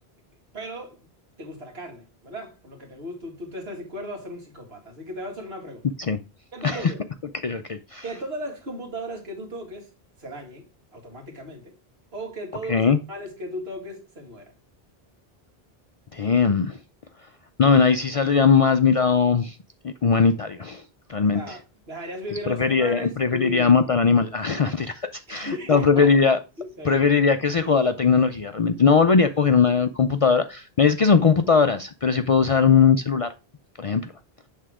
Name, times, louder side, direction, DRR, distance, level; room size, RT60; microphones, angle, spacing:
voice 1, 0.5-1.0 1.4-5.9 6.5-7.0 8.0-9.9 10.2-11.8 12.1-14.5 21.3-21.6 21.9-23.7 25.3-26.1 26.6-27.0, equal, 80° right, 2.2 m, -36 dB
voice 2, 7.4-8.0 12.7-13.0 16.1-16.8 17.6-19.6 19.8-20.8 21.1-21.6 22.5-26.4 26.8-33.3 33.8-34.1, left 5 dB, 50° left, 0.4 m, -20 dB
7.8 x 3.6 x 4.8 m
omnidirectional pair, 1.0 m